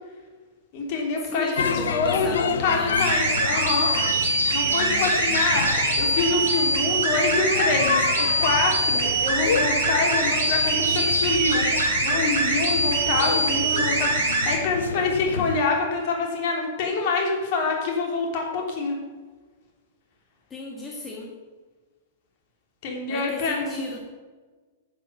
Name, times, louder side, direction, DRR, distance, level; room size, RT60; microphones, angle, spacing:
voice 1, 0.7-11.7 12.0-19.0 22.8-23.9, left 3 dB, 45° left, 0 dB, 3.3 m, -26 dB
voice 2, 1.2-3.1 20.5-21.3 23.1-24.0, left 2 dB, 20° left, -1 dB, 1.9 m, -34 dB
sound 1, 1.6-15.6, left 6 dB, 65° left, 0.8 m, -30 dB
sound 2, 2.9-3.6 3.9-6.1 7.7-11.9, left 1 dB, 85° left, 2.3 m, -33 dB
sound 3, 3.0-14.6, right 2 dB, 70° right, 4.0 m, -23 dB
10.5 x 9.3 x 6.1 m, 1.4 s
figure-of-eight pair, 100°, 0 cm